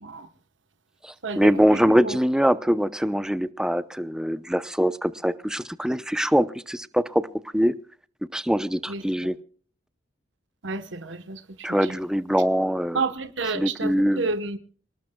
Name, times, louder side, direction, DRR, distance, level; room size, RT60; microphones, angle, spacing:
voice 1, 1.0-7.3 7.5-7.7 8.3-9.4 11.6-13.0 13.5-14.3, equal, 5° right, 0.6 m, -23 dB
voice 2, 10.6-11.4 12.9-14.6, right 4 dB, 85° right, 1.1 m, -29 dB
26.5 x 18.5 x 2.3 m
head